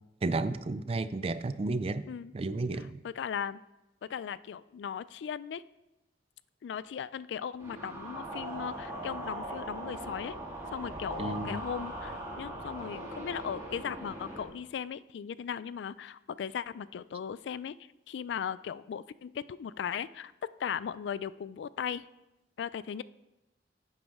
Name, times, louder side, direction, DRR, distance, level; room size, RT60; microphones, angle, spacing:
voice 1, 0.2-2.0 2.3-3.0 11.2-11.6, right 3 dB, 35° right, 14 dB, 0.4 m, -32 dB
voice 2, 2.7-3.6 4.1-5.6 6.6-10.4 10.7-17.7 18.1-20.3 20.6-22.0 22.6-23.0, left 7 dB, 75° left, 17 dB, 0.3 m, -37 dB
sound 1, 7.6-14.4, right 1 dB, 15° right, 1.8 m, -40 dB
10.5 x 8.2 x 3.6 m, 0.96 s
head